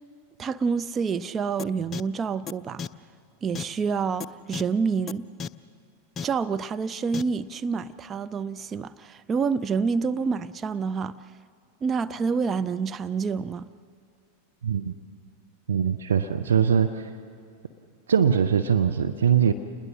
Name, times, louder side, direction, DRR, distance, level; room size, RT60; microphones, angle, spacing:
voice 1, 0.4-2.8 3.4-5.3 6.2-11.2 11.8-13.7, right 5 dB, 20° right, 0.5 m, -27 dB
sound 1, 1.6-1.7 1.9-2.0 2.5-2.6 2.8-2.9 3.6-3.7 4.2-4.3 4.5-4.6 5.1-5.2 5.4-5.5 6.2-6.3 7.1-7.2, left 6 dB, 25° left, 0.5 m, -32 dB
voice 2, 14.6-14.9 15.7-17.1 18.1-19.5, right 7 dB, 65° right, 0.8 m, -22 dB
28.5 x 20.5 x 6.4 m
figure-of-eight pair, 90°, 0 cm